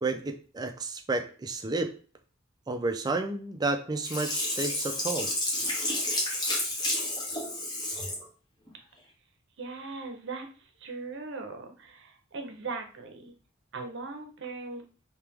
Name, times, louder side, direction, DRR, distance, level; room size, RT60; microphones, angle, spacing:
voice 1, 0.0-1.9 2.7-5.3, right 3 dB, 20° right, 5 dB, 0.4 m, -31 dB
Sink (filling or washing), 4.0-8.2 8.7-8.8, left 1 dB, 20° left, 1.1 m, -30 dB
voice 2, 9.6-10.5 10.8-13.3 13.7-14.8, right 3 dB, 60° right, 5 dB, 0.7 m, -39 dB
3.3 x 2.9 x 3.4 m, 0.39 s
head